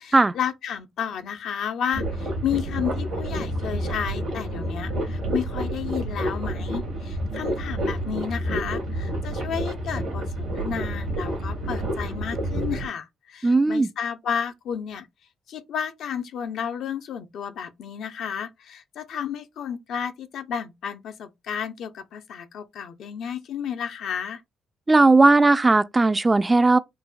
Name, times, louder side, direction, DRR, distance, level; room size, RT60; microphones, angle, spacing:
voice 1, 0.0-15.1 15.5-24.4, left 8 dB, 65° left, 0.5 m, -32 dB
sound 1, 1.9-12.9, right 1 dB, 70° right, 1.5 m, -29 dB
voice 2, 13.4-13.9 24.9-26.8, right 3 dB, 25° right, 0.4 m, -17 dB
3.9 x 2.0 x 2.3 m
hypercardioid pair, 45°, 0 cm